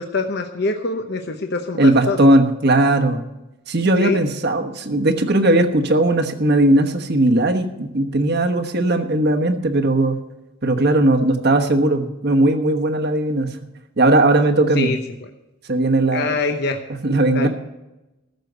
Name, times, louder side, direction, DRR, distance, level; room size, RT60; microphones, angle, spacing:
voice 1, 0.0-2.2 4.0-4.2 14.7-15.0 16.1-16.8 17.3-17.5, left 3 dB, 50° left, 5 dB, 0.9 m, -24 dB
voice 2, 1.8-3.2 3.7-10.2 10.6-13.5 14.0-15.0 15.7-16.4 16.9-17.5, right 1 dB, 50° right, 6 dB, 1.2 m, -18 dB
14.5 x 6.8 x 8.0 m, 0.99 s
head